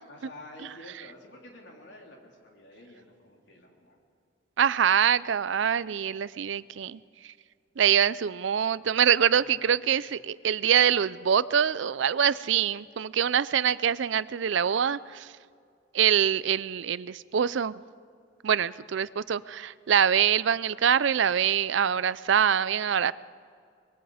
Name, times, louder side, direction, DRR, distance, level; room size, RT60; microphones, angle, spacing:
voice 1, 0.1-4.0 9.4-10.0, left 1 dB, 65° left, 0 dB, 3.5 m, -49 dB
voice 2, 4.6-7.0 7.8-15.3 15.9-17.7 18.4-23.1, right 8 dB, 75° right, 18 dB, 0.4 m, -24 dB
24.5 x 21.5 x 5.0 m, 2.2 s
head